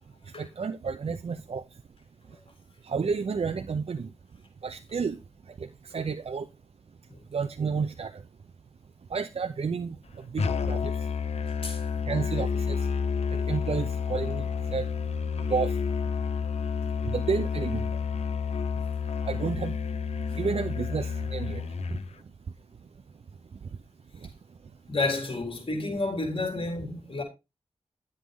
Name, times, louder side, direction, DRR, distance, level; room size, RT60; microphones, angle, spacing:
voice 1, 0.4-1.6 2.9-4.1 4.6-5.2 5.9-6.5 7.3-8.1 9.1-9.9 10.3-10.8 12.1-12.8 13.5-14.4 14.7-14.8 15.5-15.7 17.1-17.8 19.3-19.7 20.4-21.6, right 5 dB, 65° right, 0.6 m, -30 dB
Musical instrument, 10.4-22.1, left 6 dB, 75° left, 1.0 m, -30 dB
voice 2, 24.9-27.2, left 2 dB, 55° left, 4.0 m, -30 dB
11.5 x 7.9 x 3.7 m
cardioid pair, 55°, 11 cm